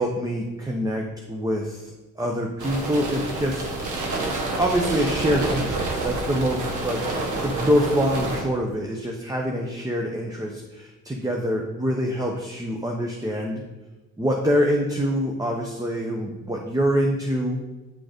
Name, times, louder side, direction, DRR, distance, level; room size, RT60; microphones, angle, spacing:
voice 1, 0.0-3.6 4.6-7.0 7.4-13.6 14.2-17.6, equal, 10° right, 1 dB, 0.9 m, -25 dB
sound 1, 2.6-8.4, right 2 dB, 75° right, 1.4 m, -28 dB
9.0 x 3.9 x 5.1 m, 1.2 s
cardioid pair, 90°, 30 cm